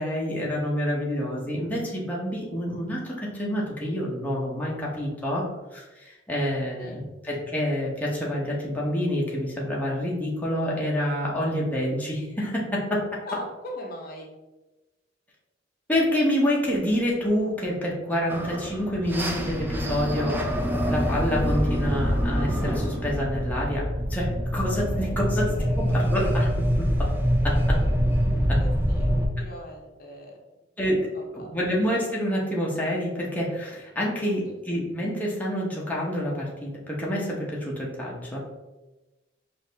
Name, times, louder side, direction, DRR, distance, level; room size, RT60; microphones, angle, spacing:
voice 1, 0.0-5.5 5.7-13.0 15.9-20.4 20.9-26.5 26.8-27.1 27.7-27.8 30.8-31.0 31.3-38.4, equal, 10° left, -4 dB, 0.8 m, -27 dB
voice 2, 13.2-14.3 25.0-25.2 28.6-29.1 29.4-30.4 31.1-31.5 34.2-34.3, equal, 50° left, 0 dB, 0.8 m, -39 dB
sound 1, 18.3-29.3, equal, 10° right, 0.4 m, -25 dB
4.7 x 2.6 x 3.3 m, 1.1 s
head